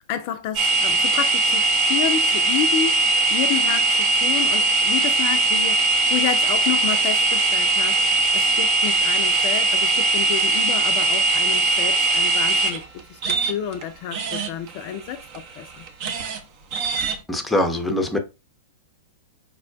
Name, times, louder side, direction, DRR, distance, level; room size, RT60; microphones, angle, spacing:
voice 1, 0.1-12.8 13.1-15.8, left 9 dB, 50° left, 0.3 m, -30 dB
sound 1, 0.6-13.8 14.1-16.4 16.7-17.2, right 3 dB, 45° right, 0.6 m, -20 dB
voice 2, 17.3-18.2, left 1 dB, 5° left, 0.6 m, -22 dB
4.5 x 2.1 x 2.4 m
hypercardioid pair, 105°, 0 cm